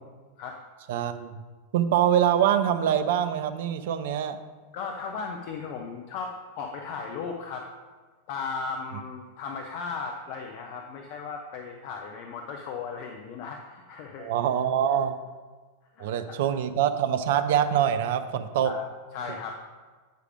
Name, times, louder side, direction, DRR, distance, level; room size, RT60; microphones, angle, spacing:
voice 1, 0.9-1.4 1.7-4.4 14.2-15.2 16.0-18.7, right 9 dB, 55° right, 10 dB, 0.5 m, -24 dB
voice 2, 4.7-7.7 8.3-14.4 16.0-16.4 18.6-18.8 19.1-19.5, left 5 dB, 45° left, 3 dB, 0.7 m, -36 dB
8.3 x 4.9 x 4.9 m, 1.4 s
figure-of-eight pair, 90°, 0 cm